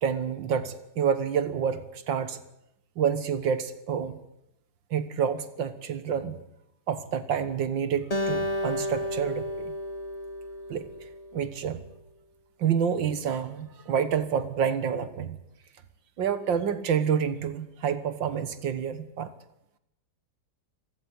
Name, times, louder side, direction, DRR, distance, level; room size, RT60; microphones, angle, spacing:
voice 1, 0.0-2.4 3.0-4.2 4.9-6.4 6.9-9.7 10.7-10.9 11.3-11.8 12.6-15.4 16.2-19.3, right 7 dB, 80° right, 12 dB, 2.0 m, -28 dB
Acoustic guitar, 8.1-11.5, left 1 dB, 20° left, 1.7 m, -32 dB
26.5 x 15.5 x 9.6 m, 0.83 s
omnidirectional pair, 2.0 m